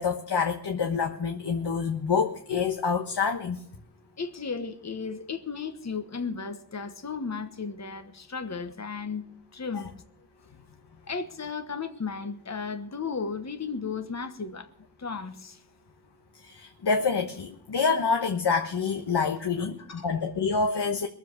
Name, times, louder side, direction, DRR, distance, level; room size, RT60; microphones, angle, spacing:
voice 1, 0.0-3.6 16.4-21.1, left 5 dB, 80° left, 4 dB, 1.2 m, -27 dB
voice 2, 4.2-9.2 9.5-9.9 11.1-14.7 15.0-15.6 19.6-20.1, left 5 dB, 40° left, 7 dB, 1.2 m, -35 dB
22.0 x 7.5 x 6.5 m, 0.67 s
wide cardioid pair, 75°, 40 cm